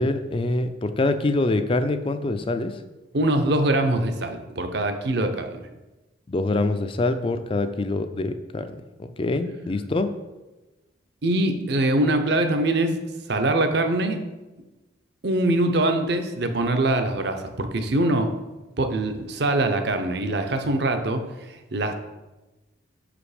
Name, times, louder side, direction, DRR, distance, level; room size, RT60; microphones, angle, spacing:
voice 1, 0.0-2.8 6.3-10.1, left 2 dB, 25° left, 9 dB, 0.4 m, -25 dB
voice 2, 3.1-5.6 11.2-13.0 13.3-14.2 15.2-18.3 18.8-21.9, right 1 dB, 55° right, 7 dB, 0.7 m, -23 dB
6.0 x 5.0 x 4.9 m, 1.1 s
head